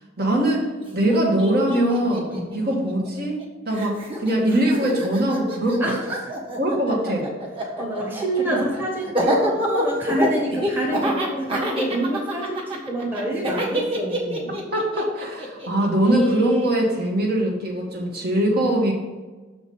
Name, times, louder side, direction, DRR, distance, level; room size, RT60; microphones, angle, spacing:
voice 1, 0.2-2.3 2.5-3.4 3.6-5.9 6.6-7.3 8.5-8.6 14.7-18.9, right 1 dB, 55° right, -1 dB, 1.6 m, -22 dB
Laughter, 0.8-0.9 1.1-3.4 3.7-16.8, equal, 30° right, 1.4 m, -27 dB
voice 2, 7.8-14.5, right 1 dB, 10° right, -2 dB, 1.2 m, -27 dB
6.6 x 5.1 x 5.3 m, 1.3 s
head